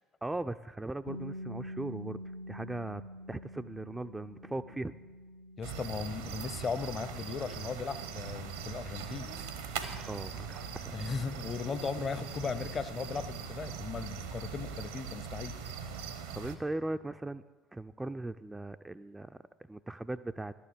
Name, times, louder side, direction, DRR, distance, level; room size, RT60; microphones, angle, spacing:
voice 1, 0.2-2.2 2.5-3.0 3.3-5.0 10.1-11.0 16.3-17.4 17.7-19.4 19.7-20.5, right 2 dB, 10° right, 9 dB, 0.3 m, -38 dB
sound 1, 1.1-12.9, equal, 75° left, 0.5 m, -48 dB
voice 2, 5.6-9.3 10.9-15.5, left 5 dB, 35° left, 13 dB, 0.6 m, -37 dB
sound 2, 5.6-16.6, right 6 dB, 70° right, 0.8 m, -41 dB
11.5 x 7.1 x 6.9 m, 1.3 s
figure-of-eight pair, 55°, 0 cm